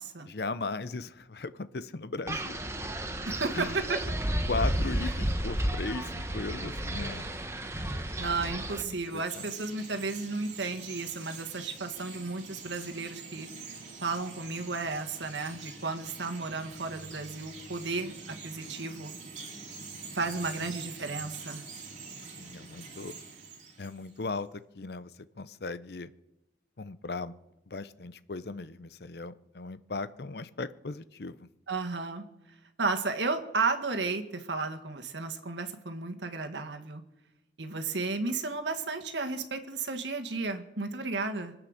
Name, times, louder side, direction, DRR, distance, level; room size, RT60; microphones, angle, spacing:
voice 1, 0.3-2.6 3.5-3.8 4.5-7.3 8.8-9.5 22.4-23.1 23.8-24.5 24.7-25.1 25.4-26.1 26.8-27.3 27.7-31.5, left 3 dB, 60° left, 14 dB, 0.7 m, -37 dB
Wind, 2.3-8.8, right 1 dB, 15° right, 1.2 m, -32 dB
voice 2, 3.3-4.0 8.2-13.5 14.0-19.1 20.1-21.6 31.7-32.2 32.8-37.0 37.6-41.5, right 3 dB, 80° right, 6 dB, 1.7 m, -33 dB
Chirp tweet, 8.6-24.2, right 4 dB, 40° right, 3.1 m, -45 dB
24.5 x 8.9 x 6.5 m, 0.91 s
head